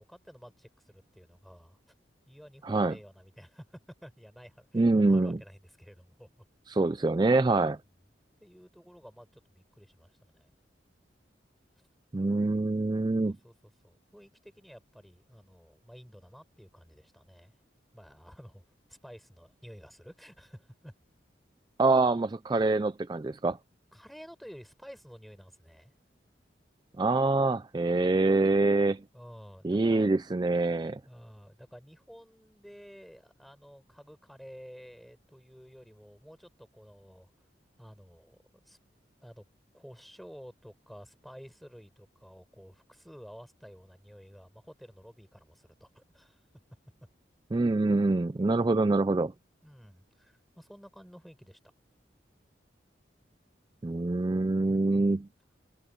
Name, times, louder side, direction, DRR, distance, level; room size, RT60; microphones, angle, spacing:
voice 1, 0.0-1.8 2.3-6.3 6.8-6.9 8.4-10.5 11.8-11.9 13.2-17.6 17.9-18.6 18.9-20.9 23.9-25.9 29.1-30.2 31.0-37.3 37.8-38.8 39.2-39.5 39.7-46.4 49.6-51.6, equal, ahead, 7.6 m, -51 dB
voice 2, 4.7-5.4 6.7-7.8 12.1-13.3 21.8-23.6 27.0-29.0 29.6-31.0 47.5-49.3 53.8-55.3, right 2 dB, 25° right, 0.3 m, -25 dB
head